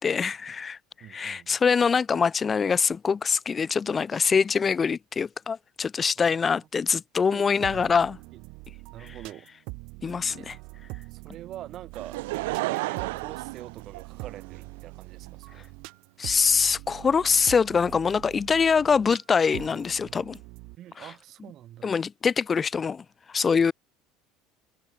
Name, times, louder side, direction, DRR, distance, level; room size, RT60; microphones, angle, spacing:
voice 1, 0.0-8.2 9.0-9.1 10.0-10.6 16.2-20.4 21.0-21.1 21.8-23.7, left 6 dB, 25° left, 0.3 m, -24 dB
voice 2, 1.0-1.5 6.2-6.7 7.3-7.9 8.9-9.5 10.3-10.5 11.1-12.2 12.7-15.7 20.8-21.9, right 12 dB, 50° right, 2.0 m, -45 dB
sound 1, 7.6-20.8, right 26 dB, 70° right, 2.3 m, -43 dB
Laughter / Crowd, 11.9-14.6 15.3-15.4, right 22 dB, 85° right, 0.8 m, -32 dB
supercardioid pair, 110°, 0 cm